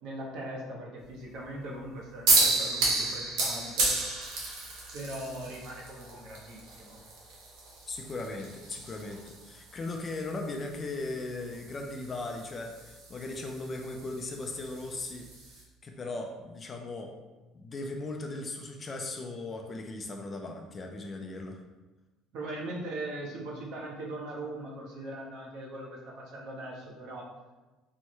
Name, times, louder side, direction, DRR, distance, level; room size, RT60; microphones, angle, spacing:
voice 1, 0.0-4.0 4.9-7.0 22.3-27.3, right 1 dB, 60° right, -2 dB, 0.9 m, -40 dB
sound 1, 2.3-15.6, right 3 dB, 90° right, 1.3 m, -33 dB
voice 2, 7.9-15.3 15.8-17.1 17.5-21.6, left 2 dB, 20° left, 3 dB, 0.4 m, -38 dB
4.5 x 2.1 x 4.4 m, 1.2 s
cardioid pair, 170°, 0 cm